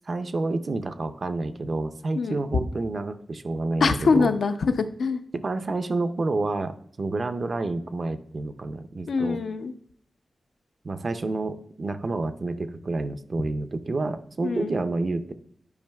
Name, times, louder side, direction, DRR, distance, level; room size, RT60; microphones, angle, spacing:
voice 1, 0.1-4.3 5.4-9.4 10.8-15.3, right 3 dB, 40° right, 10 dB, 0.4 m, -29 dB
voice 2, 3.8-5.2 9.1-9.7 14.4-14.7, left 4 dB, 70° left, 8 dB, 0.5 m, -23 dB
10.5 x 4.9 x 2.3 m, 0.64 s
wide cardioid pair, 145°, 0 cm